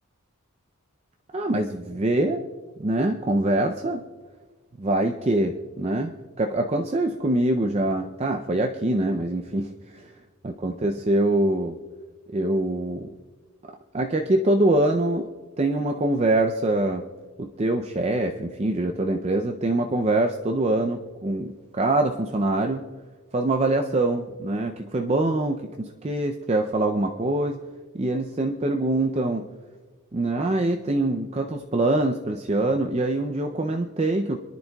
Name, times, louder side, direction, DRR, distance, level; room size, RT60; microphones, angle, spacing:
voice 1, 1.3-2.4 2.8-4.0 4.8-10.1 10.4-11.8 12.3-13.1 13.9-15.3 15.6-17.1 17.4-22.9 23.3-27.6 27.9-29.5 30.1-34.4, right 2 dB, 30° right, 4 dB, 0.5 m, -24 dB
27.0 x 10.5 x 2.3 m, 1.4 s
head